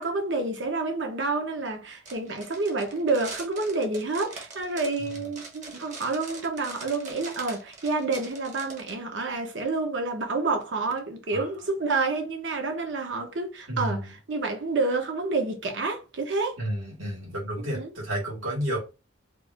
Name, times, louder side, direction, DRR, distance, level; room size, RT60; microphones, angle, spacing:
voice 1, 0.0-16.6 17.6-17.9, right 3 dB, 65° right, 0.8 m, -29 dB
sound 1, 2.0-8.9, right 3 dB, 35° right, 0.8 m, -42 dB
voice 2, 13.7-14.1 16.6-18.8, right 1 dB, 85° right, 2.0 m, -31 dB
3.3 x 2.5 x 3.4 m
head